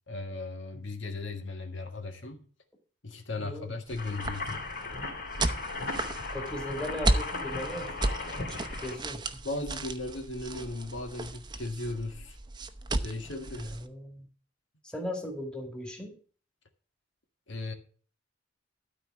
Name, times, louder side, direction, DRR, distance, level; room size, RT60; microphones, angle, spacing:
voice 1, 0.1-2.4 3.0-4.7 9.4-12.4 13.0-13.8 17.5-17.7, left 2 dB, 70° left, 1.6 m, -37 dB
voice 2, 3.4-3.8 6.3-9.4 13.6-14.3 14.8-16.2, left 1 dB, 5° left, 2.1 m, -39 dB
sound 1, 3.9-13.9, right 2 dB, 25° right, 0.7 m, -34 dB
sound 2, 4.0-9.0, left 3 dB, 55° left, 3.1 m, -37 dB
12.5 x 4.6 x 7.3 m
head